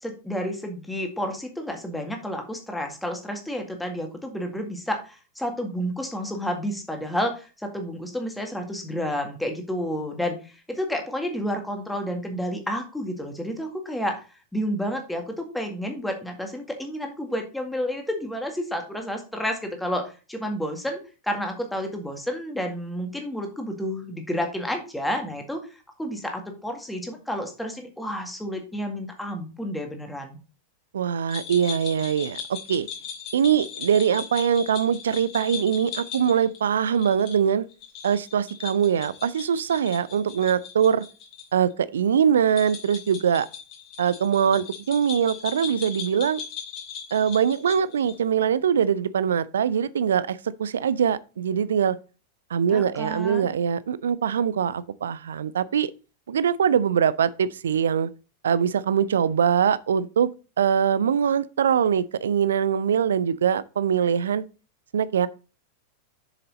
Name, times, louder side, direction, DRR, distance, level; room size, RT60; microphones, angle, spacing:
voice 1, 0.0-14.2 14.5-25.7 26.0-30.4 52.7-53.5, equal, 5° left, 1.9 m, -30 dB
voice 2, 30.9-32.9 33.3-37.6 38.0-41.0 41.5-43.5 44.0-46.4 47.1-52.0 52.5-55.9 56.3-58.1 58.4-60.3 60.6-64.4 64.9-65.3, right 8 dB, 65° right, 0.5 m, -23 dB
sound 1, 31.3-41.5 41.7-41.8 42.5-48.2, left 7 dB, 40° left, 2.8 m, -38 dB
7.2 x 6.7 x 4.1 m
figure-of-eight pair, 90°, 0 cm